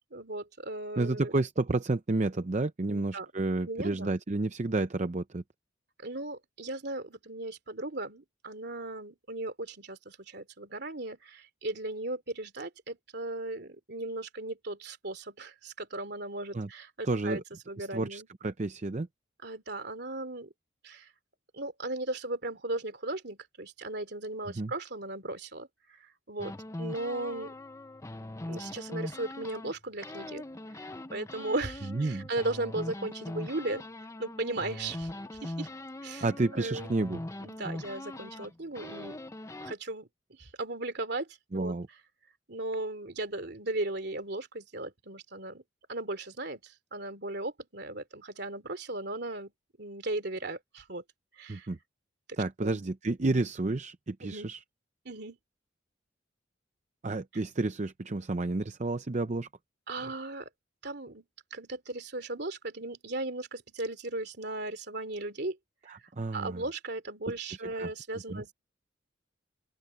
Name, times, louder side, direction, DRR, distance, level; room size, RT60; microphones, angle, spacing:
voice 1, 0.1-1.3 2.9-3.3 3.6-4.1 6.0-18.3 19.4-20.5 20.8-21.1 21.5-26.0 26.3-27.5 28.5-30.4 30.8-33.8 34.2-35.1 35.4-35.7 36.0-36.2 36.5-36.9 37.4-39.2 39.6-40.1 40.4-41.3 41.5-41.8 42.5-45.6 45.9-49.5 49.8-51.0 51.4-51.7 52.6-52.8 54.2-54.5 55.0-55.4 59.9-60.5 60.8-61.2 61.5-65.6 65.8-66.0 66.3-68.5, right 2 dB, 55° right, 3.1 m, -37 dB
voice 2, 1.0-5.4 16.5-16.7 17.0-17.4 17.8-19.1 24.5-24.7 31.9-32.3 36.2-37.2 41.5-41.9 51.5-51.8 52.4-54.6 57.0-59.5 60.0-60.1 65.9-66.6 67.8-67.9 68.3-68.4, right 2 dB, 35° right, 0.6 m, -31 dB
sound 1, 26.4-29.8 30.0-39.7, left 1 dB, 15° left, 0.6 m, -41 dB
open air
head